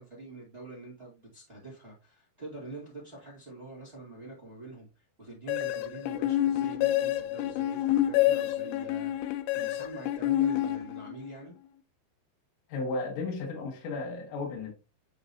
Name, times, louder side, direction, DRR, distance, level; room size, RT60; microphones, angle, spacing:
voice 1, 0.0-11.5, right 2 dB, 80° right, 0.5 m, -45 dB
sound 1, 5.5-11.3, left 13 dB, 90° left, 3.3 m, -28 dB
voice 2, 12.7-14.7, left 3 dB, 70° left, 4.1 m, -34 dB
11.0 x 4.0 x 2.7 m
omnidirectional pair, 5.4 m